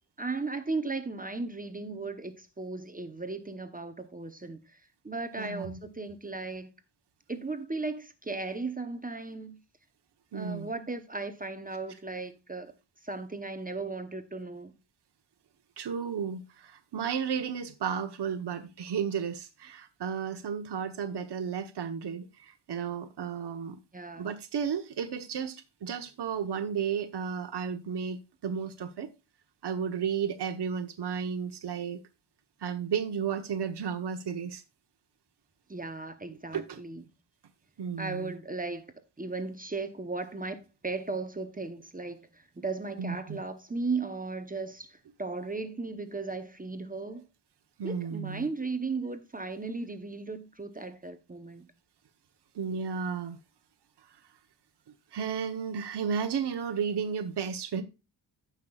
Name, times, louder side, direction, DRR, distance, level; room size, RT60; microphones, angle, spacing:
voice 1, 0.2-4.6 5.0-6.7 7.3-9.6 10.3-12.7 13.0-14.7 23.9-24.3 35.7-37.0 38.0-38.9 39.2-42.3 42.6-47.3 47.8-51.7, right 3 dB, 20° right, 0.8 m, -36 dB
voice 2, 5.4-5.8 10.3-10.7 15.8-23.8 24.2-29.1 29.6-32.0 32.6-34.6 36.5-36.8 37.8-38.4 43.0-43.4 47.8-48.5 52.5-53.4 55.1-57.8, right 7 dB, 65° right, 1.0 m, -33 dB
16.0 x 5.7 x 2.3 m
wide cardioid pair, 170°, 44 cm